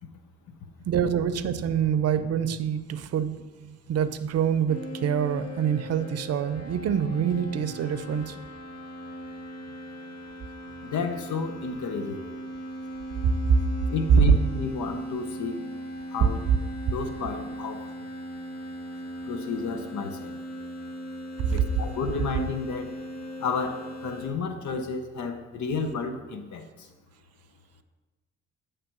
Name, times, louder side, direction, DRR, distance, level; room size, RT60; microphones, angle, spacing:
voice 1, 0.9-8.4 13.5-13.6 21.5-21.6, right 8 dB, 55° right, 11 dB, 0.6 m, -26 dB
sound 1, 4.7-24.3, equal, 55° left, 1.7 m, -39 dB
voice 2, 10.8-12.2 13.9-15.6 16.1-16.4 16.9-17.9 19.3-20.4 21.5-22.9 23.4-26.9, left 4 dB, 70° left, 8 dB, 0.8 m, -31 dB
8.9 x 3.3 x 5.9 m, 1.2 s
cardioid pair, 90°, 30 cm